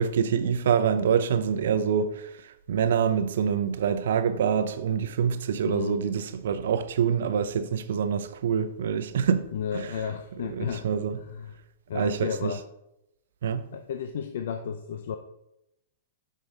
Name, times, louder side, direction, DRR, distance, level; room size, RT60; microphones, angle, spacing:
voice 1, 0.0-9.5 9.7-9.9 10.5-11.2 11.9-12.5 13.4-13.7, right 7 dB, 75° right, 0.6 m, -26 dB
voice 2, 5.6-6.0 9.5-10.9 11.1-11.5 11.9-12.6 13.7-15.2, left 7 dB, 70° left, 0.5 m, -33 dB
6.4 x 5.3 x 3.8 m
hypercardioid pair, 120°, 0 cm